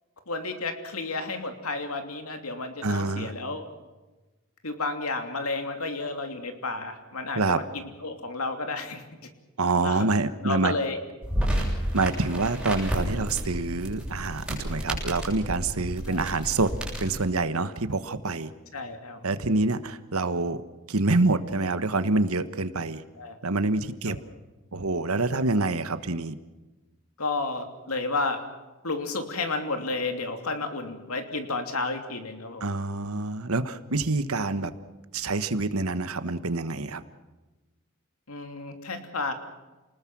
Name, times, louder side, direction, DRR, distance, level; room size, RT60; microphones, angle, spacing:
voice 1, 0.3-3.6 4.6-9.0 9.8-10.1 10.4-11.0 16.1-16.3 18.7-19.2 23.2-23.4 24.1-24.2 27.2-28.4 28.8-32.6 38.3-39.3, left 3 dB, 90° left, 6 dB, 3.0 m, -31 dB
voice 2, 2.8-3.3 7.3-7.6 9.6-10.7 11.9-16.7 17.0-18.5 19.2-20.6 20.9-23.0 23.4-24.2 24.7-26.3 32.6-34.7 35.1-37.0, right 3 dB, 90° right, 11 dB, 1.3 m, -26 dB
sound 1, 11.2-17.2, equal, 5° right, 7.1 m, -31 dB
28.5 x 20.0 x 6.2 m, 1.1 s
head